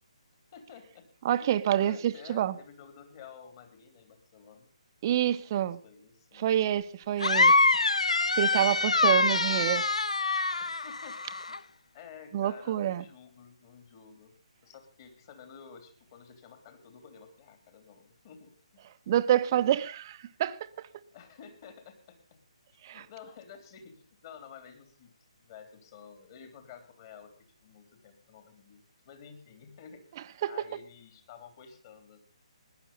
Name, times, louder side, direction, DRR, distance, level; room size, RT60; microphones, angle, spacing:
voice 1, 0.5-1.1 1.4-4.7 5.6-6.6 7.2-7.6 8.5-9.6 10.6-11.2 11.5-11.6 11.9-14.3 14.6-18.8 21.1-22.4 22.9-25.1 25.4-27.3 27.6-32.2, left 7 dB, 35° left, 8 dB, 3.2 m, -51 dB
voice 2, 1.2-2.5 5.0-5.8 6.4-7.5 8.3-9.8 12.3-13.0 19.1-20.6 22.8-23.0 30.4-30.5, right 11 dB, 35° right, 13 dB, 0.8 m, -27 dB
sound 1, 7.2-11.6, left 3 dB, 75° left, 0.7 m, -25 dB
17.5 x 11.0 x 5.6 m, 0.40 s
figure-of-eight pair, 140°, 4 cm